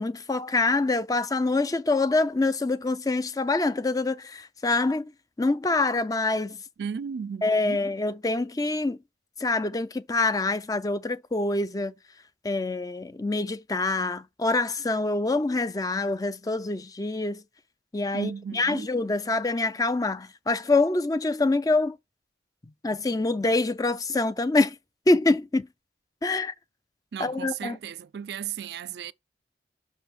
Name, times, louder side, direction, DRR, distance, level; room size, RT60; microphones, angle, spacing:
voice 1, 0.0-5.1 5.4-6.6 7.4-9.0 9.4-11.9 12.4-17.4 17.9-22.0 22.8-24.8 25.1-25.7 26.2-26.5 27.2-27.8, left 2 dB, 20° left, 0.4 m, -25 dB
voice 2, 6.8-7.8 18.1-18.9 27.1-29.1, right 7 dB, 65° right, 0.3 m, -35 dB
5.9 x 3.5 x 5.9 m
head